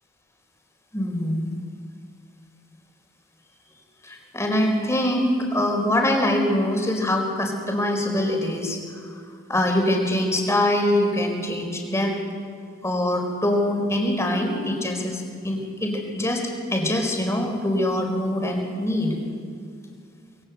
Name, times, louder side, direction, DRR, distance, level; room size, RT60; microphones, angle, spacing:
voice 1, 0.9-1.5 4.0-9.2 9.5-12.1 12.8-16.4 16.7-19.2, left 1 dB, 15° left, 2 dB, 4.4 m, -24 dB
26.0 x 22.0 x 8.1 m, 2.2 s
head